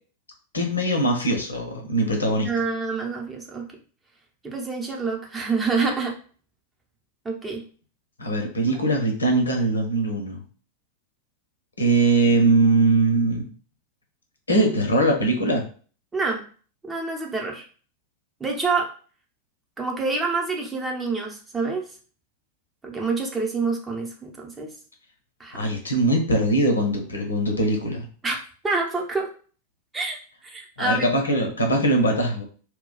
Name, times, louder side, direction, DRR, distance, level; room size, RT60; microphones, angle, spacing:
voice 1, 0.5-2.5 8.2-10.4 11.8-13.5 14.5-15.6 25.5-28.1 30.8-32.4, right 2 dB, 75° left, 2 dB, 0.8 m, -21 dB
voice 2, 2.4-3.7 4.4-6.2 7.2-7.6 8.6-8.8 16.1-16.4 16.8-17.6 18.4-18.9 19.8-21.9 22.8-24.7 25.4-25.7 28.2-28.4 28.6-29.3 29.9-31.1, right 4 dB, 15° right, 0 dB, 0.7 m, -27 dB
2.3 x 2.2 x 3.8 m, 0.41 s
figure-of-eight pair, 90°, 0 cm